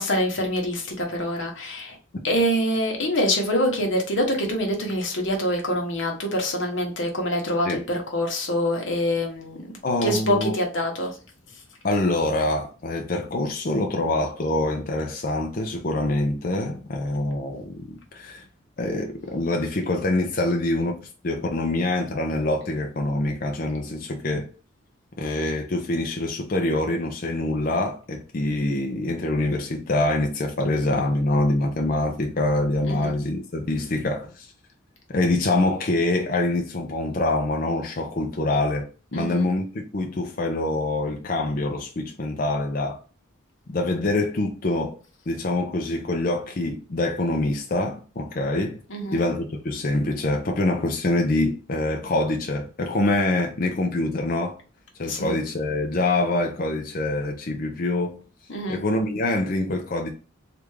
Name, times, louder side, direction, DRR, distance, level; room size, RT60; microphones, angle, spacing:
voice 1, 0.0-2.0 2.2-9.7 10.0-11.2 32.8-33.1 39.1-39.4 48.9-49.2 55.1-55.4 58.5-58.8, equal, 65° left, 1.0 m, -25 dB
voice 2, 9.8-10.5 11.8-18.4 18.8-21.0 21.2-24.5 25.2-34.5 35.1-43.0 43.7-45.0 45.3-48.8 49.1-54.6 55.0-58.2 58.7-60.1, left 2 dB, 45° left, 0.5 m, -25 dB
3.4 x 2.5 x 3.1 m
head